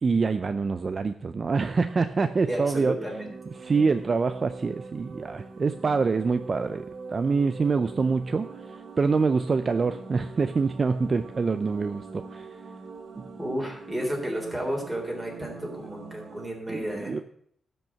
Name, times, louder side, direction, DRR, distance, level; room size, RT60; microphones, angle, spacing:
voice 1, 0.0-3.0 3.6-8.5 9.0-12.5 13.1-13.2 16.7-17.2, right 4 dB, 40° right, 10 dB, 0.5 m, -25 dB
voice 2, 2.5-3.3 13.4-17.2, right 1 dB, 5° right, 0 dB, 3.6 m, -32 dB
sound 1, 2.9-16.5, right 4 dB, 55° right, 1.7 m, -43 dB
12.0 x 5.4 x 8.7 m, 0.66 s
wide cardioid pair, 125°, 0 cm